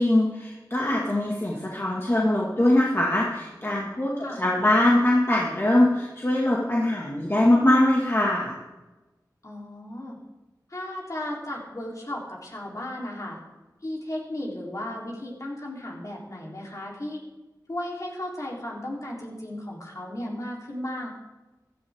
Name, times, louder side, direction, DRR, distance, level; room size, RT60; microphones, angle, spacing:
voice 1, 0.0-8.6, left 1 dB, 35° left, -3 dB, 2.0 m, -22 dB
voice 2, 9.4-10.2 10.7-13.4 13.8-17.2 17.7-21.1, left 1 dB, 50° left, -3 dB, 3.5 m, -35 dB
15.5 x 12.5 x 3.6 m, 1.2 s
wide cardioid pair, 60°, 7 cm